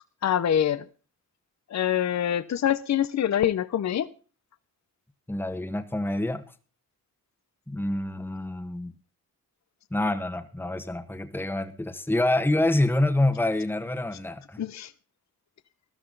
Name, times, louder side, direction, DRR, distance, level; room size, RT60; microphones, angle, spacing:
voice 1, 0.2-0.9 1.7-4.1 14.6-14.9, left 10 dB, 50° left, 15 dB, 0.9 m, -25 dB
voice 2, 5.3-6.4 7.7-8.9 9.9-14.6, left 1 dB, 5° left, 7 dB, 1.5 m, -27 dB
14.0 x 12.0 x 4.0 m, 0.38 s
cardioid pair, 90°, 36 cm